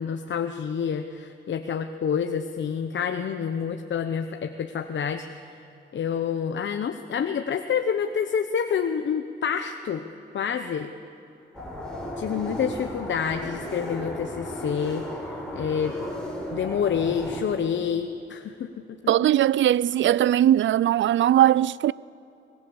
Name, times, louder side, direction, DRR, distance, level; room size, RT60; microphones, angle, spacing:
voice 1, 0.0-5.5 5.9-10.0 10.3-10.9 12.2-16.0 16.5-19.0, left 7 dB, 75° left, 0.9 m, -28 dB
sound 1, 11.5-17.4, equal, 5° left, 6.1 m, -35 dB
voice 2, 19.1-21.9, right 12 dB, 75° right, 0.4 m, -20 dB
25.0 x 19.5 x 7.2 m
cardioid pair, 85°, 19 cm